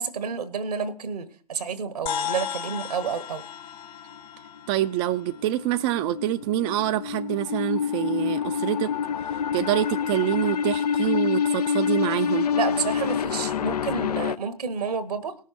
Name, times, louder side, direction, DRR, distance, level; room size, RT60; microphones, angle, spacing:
voice 1, 0.0-3.4 12.5-15.4, right 6 dB, 80° right, 1.3 m, -30 dB
sound 1, 2.1-6.7, left 9 dB, 60° left, 1.6 m, -36 dB
voice 2, 4.7-8.9 9.5-12.5, right 13 dB, 50° right, 0.5 m, -26 dB
sound 2, 5.2-14.4, left 7 dB, 80° left, 0.4 m, -27 dB
18.5 x 6.4 x 4.2 m
figure-of-eight pair, 90°, 20 cm